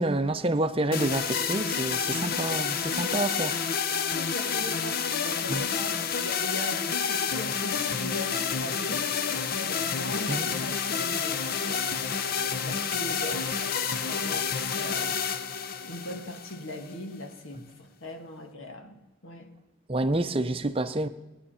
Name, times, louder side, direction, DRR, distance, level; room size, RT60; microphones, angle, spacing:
voice 1, 0.0-3.6 5.5-5.6 10.3-10.5 19.9-21.1, right 2 dB, 25° right, 0.6 m, -28 dB
sound 1, 0.9-16.9, left 6 dB, 45° left, 0.6 m, -29 dB
voice 2, 3.9-11.9 12.6-15.2 15.8-19.6, left 1 dB, 85° left, 1.7 m, -40 dB
20.5 x 9.8 x 5.7 m
head